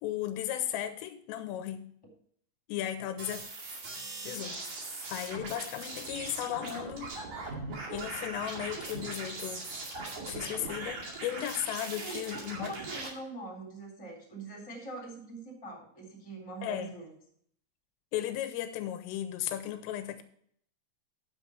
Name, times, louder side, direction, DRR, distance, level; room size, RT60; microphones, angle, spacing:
voice 1, 0.0-1.9 2.7-3.4 4.2-4.6 5.1-7.1 7.4-7.6 7.9-9.7 10.3-12.7 16.6-17.0 18.1-20.2, left 12 dB, 85° left, 10 dB, 3.2 m, -35 dB
sound 1, 3.2-13.1, right 3 dB, 45° right, 2.9 m, -40 dB
voice 2, 11.9-17.1, right 2 dB, 10° left, -2 dB, 2.8 m, -43 dB
9.9 x 7.8 x 4.5 m, 0.65 s
omnidirectional pair, 5.9 m